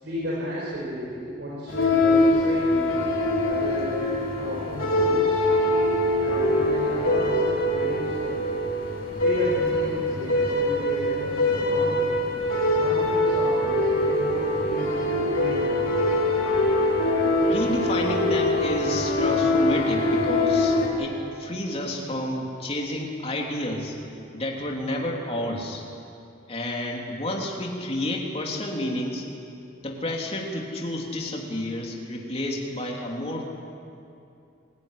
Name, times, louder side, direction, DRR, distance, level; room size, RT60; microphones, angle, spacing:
voice 1, 0.0-2.9 3.4-5.4 6.2-8.5 9.2-12.1 12.7-15.8, equal, 60° right, -6 dB, 5.0 m, -33 dB
sound 1, 1.7-20.9, left 1 dB, 90° left, 4.2 m, -23 dB
voice 2, 17.4-25.8 26.5-29.2 29.8-33.4, left 1 dB, 30° left, 0 dB, 3.1 m, -30 dB
25.0 x 15.5 x 10.0 m, 2.6 s
head